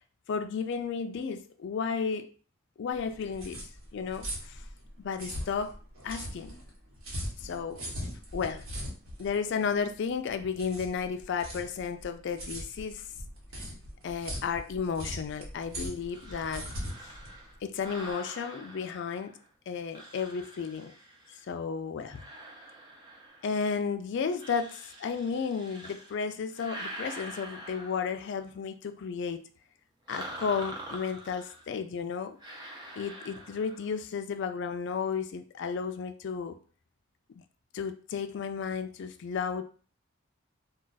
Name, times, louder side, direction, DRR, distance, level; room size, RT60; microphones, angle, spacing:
voice 1, 0.3-2.3 2.8-3.6 3.9-4.6 5.0-5.7 6.0-6.5 7.4-7.8 8.3-8.7 9.2-13.0 14.0-16.7 17.0-17.1 17.6-19.4 19.7-20.9 21.5-22.2 23.4-29.4 30.1-32.4 33.0-36.6 37.7-39.6, left 6 dB, 55° left, 0.3 m, -33 dB
sound 1, 2.9-18.1, equal, 90° right, 1.2 m, -40 dB
sound 2, 16.1-19.5 19.9-21.5 22.0-23.7 24.3-26.2 26.5-28.4 30.1-31.7 32.4-33.9, right 1 dB, 20° right, 0.5 m, -45 dB
2.4 x 2.3 x 3.9 m
head